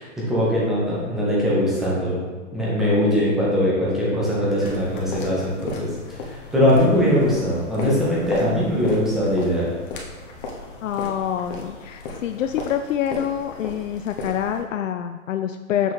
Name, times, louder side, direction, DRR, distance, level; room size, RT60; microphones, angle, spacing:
voice 1, 0.0-2.2 2.5-5.9 6.3-9.7, left 1 dB, ahead, -7 dB, 0.3 m, -21 dB
sound 1, 4.6-14.6, left 3 dB, 40° left, 1.3 m, -36 dB
voice 2, 10.8-15.9, left 9 dB, 75° left, 7 dB, 0.5 m, -26 dB
6.8 x 6.0 x 3.0 m, 1.3 s
hypercardioid pair, 130°, 39 cm